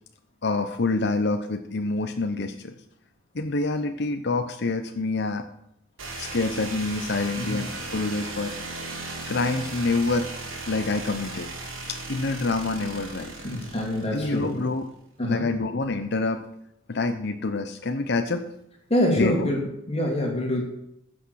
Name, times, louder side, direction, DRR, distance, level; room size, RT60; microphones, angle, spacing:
voice 1, 0.4-2.7 3.3-5.5 6.2-8.5 9.3-10.3 10.7-11.5 11.9-13.4 14.1-14.9 15.3-16.4 16.9-18.4 19.2-19.5, left 3 dB, 55° left, 6 dB, 0.8 m, -27 dB
sound 1, 6.0-14.7, right 2 dB, 85° right, 3.1 m, -37 dB
voice 2, 13.4-14.6 15.2-15.4 18.9-20.6, left 1 dB, 30° left, 0 dB, 2.9 m, -25 dB
15.0 x 6.3 x 6.3 m, 0.77 s
head